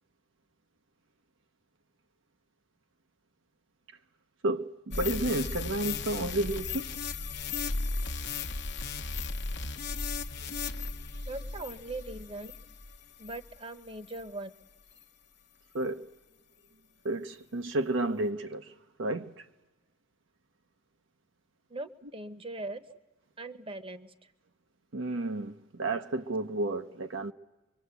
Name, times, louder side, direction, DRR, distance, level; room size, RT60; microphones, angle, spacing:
voice 1, 4.4-6.9 15.7-16.0 17.0-18.7 19.0-19.4 24.9-27.3, right 2 dB, 65° right, 0.8 m, -31 dB
sound 1, 4.9-13.6 14.1-14.2, left 4 dB, 55° left, 1.0 m, -36 dB
voice 2, 11.3-12.5 13.2-14.5 21.7-22.8 23.4-24.3, right 2 dB, 25° right, 1.0 m, -40 dB
25.0 x 24.0 x 8.2 m
head